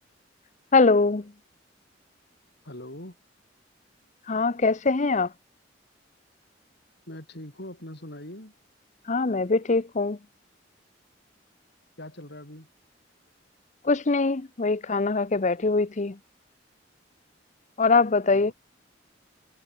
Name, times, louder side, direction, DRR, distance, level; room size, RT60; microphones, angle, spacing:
voice 1, 0.7-1.2 4.3-5.3 9.1-10.2 13.8-16.1 17.8-18.5, left 3 dB, 40° left, 0.7 m, -22 dB
voice 2, 2.6-3.2 7.1-8.5 12.0-12.7 18.3-18.5, left 1 dB, 60° left, 7.7 m, -42 dB
head